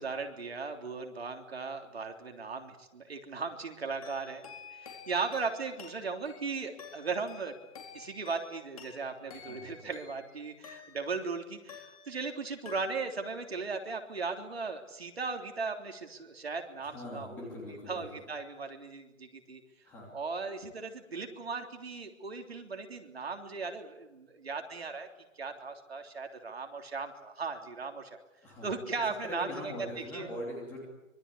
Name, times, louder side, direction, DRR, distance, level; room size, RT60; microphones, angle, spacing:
voice 1, 0.0-4.4 4.7-7.6 7.9-17.5 17.9-19.6 20.1-25.1 25.4-28.1 28.6-29.7 30.1-30.3, right 4 dB, 50° right, 4 dB, 3.5 m, -37 dB
sound 1, 4.0-11.3 11.7-12.4 12.7-13.3, left 6 dB, 25° left, 4.2 m, -51 dB
voice 2, 9.3-9.9 16.8-18.2 19.8-20.1 28.4-28.8 29.2-30.8, left 1 dB, 5° left, -2 dB, 2.9 m, -42 dB
25.5 x 23.5 x 8.5 m, 0.98 s
hypercardioid pair, 175°, 40 cm